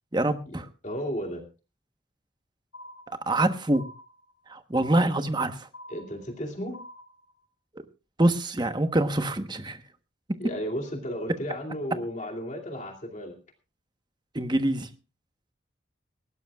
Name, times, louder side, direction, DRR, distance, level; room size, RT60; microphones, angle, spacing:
voice 1, 0.1-0.7 3.3-3.9 4.5-5.7 8.2-9.8 10.3-10.4 14.3-14.9, right 1 dB, 20° right, 9 dB, 1.1 m, -25 dB
voice 2, 0.8-1.4 5.9-6.8 10.4-13.4, equal, 35° left, 3 dB, 2.5 m, -34 dB
sound 1, 2.7-3.4 3.7-4.4 4.7-5.4 5.7-6.4 6.7-7.4, left 1 dB, 75° left, 6.1 m, -47 dB
19.5 x 17.5 x 2.4 m, 0.32 s
head